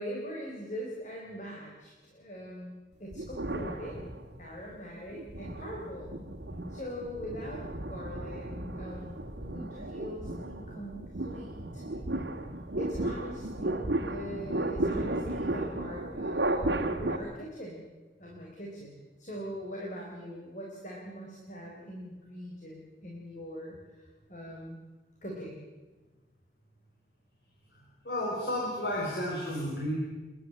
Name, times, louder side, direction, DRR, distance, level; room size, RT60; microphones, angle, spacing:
voice 1, 0.0-2.7 3.0-4.0 4.4-6.1 6.7-8.5 8.7-9.1 9.4-11.8 12.8-16.8 17.1-17.8 18.2-24.8 25.2-25.6, equal, 40° left, -2 dB, 4.2 m, -42 dB
sound 1, 3.1-4.5 5.1-17.2, right 1 dB, 75° right, 2.0 m, -34 dB
voice 2, 28.0-30.0, left 1 dB, 65° left, -4 dB, 4.8 m, -32 dB
29.0 x 11.5 x 9.8 m, 1.2 s
head